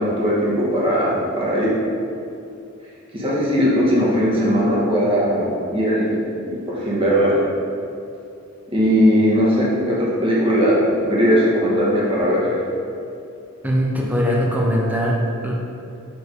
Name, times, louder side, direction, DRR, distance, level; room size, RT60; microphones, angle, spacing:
voice 1, 0.0-1.7 3.1-7.4 8.7-12.6, equal, 25° right, -6 dB, 1.1 m, -19 dB
voice 2, 13.6-15.5, equal, 10° right, -3 dB, 0.7 m, -21 dB
6.4 x 3.4 x 4.8 m, 2.6 s
head